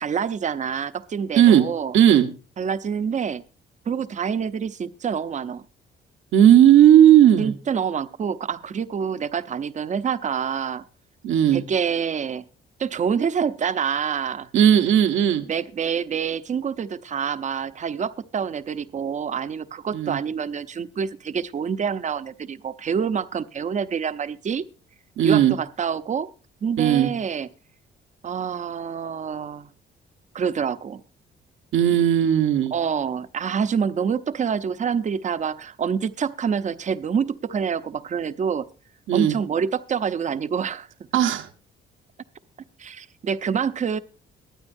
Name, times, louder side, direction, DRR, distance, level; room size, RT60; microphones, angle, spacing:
voice 1, 0.0-1.9 2.6-3.4 3.9-5.6 7.4-10.8 11.5-12.4 12.8-14.5 15.5-24.6 25.2-26.3 26.6-27.5 28.2-29.7 30.3-31.0 32.7-38.7 39.1-40.9 42.8-44.0, right 7 dB, 40° right, 13 dB, 0.6 m, -27 dB
voice 2, 1.9-2.3 6.3-7.5 11.2-11.6 14.5-15.4 19.9-20.2 25.2-25.6 26.8-27.1 31.7-32.7 39.1-39.4 41.1-41.5, right 10 dB, 80° right, 7 dB, 1.0 m, -16 dB
22.5 x 8.9 x 2.6 m, 0.34 s
cardioid pair, 90°, 20 cm